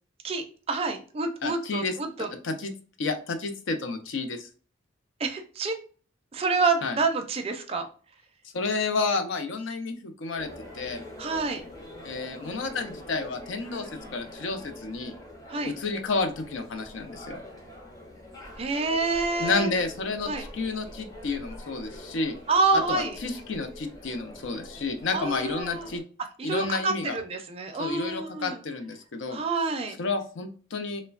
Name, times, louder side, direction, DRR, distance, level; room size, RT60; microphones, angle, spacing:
voice 1, 0.2-2.3 5.2-5.8 6.3-7.9 11.2-11.6 15.5-15.8 18.6-19.7 20.3-20.4 22.5-23.2 25.1-25.9 26.4-28.6 29.3-30.0, right 3 dB, 30° right, 5 dB, 0.4 m, -28 dB
voice 2, 1.4-1.9 2.4-2.7 3.0-4.5 6.8-7.0 8.5-11.0 12.0-15.1 15.6-17.4 19.4-22.3 22.7-26.0 26.4-27.2 27.8-29.4 30.0-31.0, left 3 dB, 70° left, 7 dB, 0.4 m, -30 dB
sound 1, 10.4-26.0, left 1 dB, 15° left, 0.6 m, -44 dB
3.1 x 2.1 x 2.3 m, 0.40 s
head